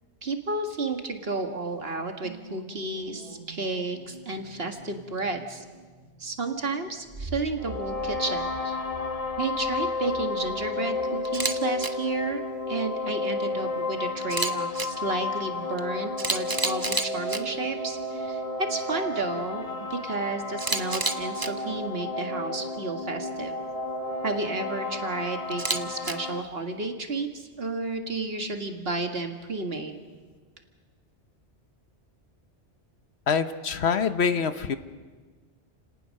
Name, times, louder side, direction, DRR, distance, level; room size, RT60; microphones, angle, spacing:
voice 1, 0.2-5.7 6.2-8.8 9.4-18.4 18.7-19.6 19.9-23.6 24.2-30.0, right 3 dB, 60° right, 5 dB, 2.0 m, -32 dB
sound 1, 2.2-12.7 13.0-13.1, right 3 dB, 35° right, 1.4 m, -46 dB
sound 2, 7.6-26.4, left 2 dB, 35° left, 1.4 m, -32 dB
Camera, 11.2-11.5 11.8-11.9 14.2-14.9 15.8-15.9 16.2-17.4 20.6-21.5 25.5-26.1, right 3 dB, 20° right, 0.9 m, -28 dB
voice 2, 33.3-34.8, left 6 dB, 70° left, 11 dB, 1.2 m, -25 dB
29.5 x 18.5 x 6.5 m, 1.4 s
omnidirectional pair, 1.1 m